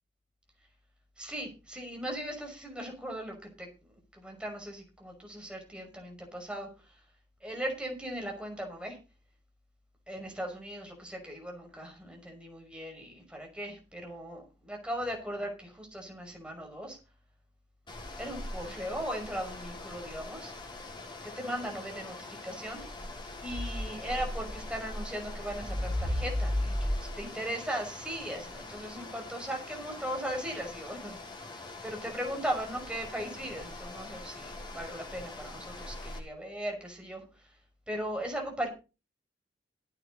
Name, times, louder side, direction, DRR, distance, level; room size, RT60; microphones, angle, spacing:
voice 1, 1.2-3.7 4.1-6.7 7.4-9.0 10.1-17.0 18.2-20.5 21.2-22.8 23.4-26.9 27.2-31.5 31.8-37.2 37.9-38.7, equal, 5° right, 1 dB, 5.7 m, -38 dB
sound 1, 17.9-36.2, left 1 dB, 25° left, 5.8 m, -39 dB
16.0 x 9.1 x 4.1 m, 0.31 s
head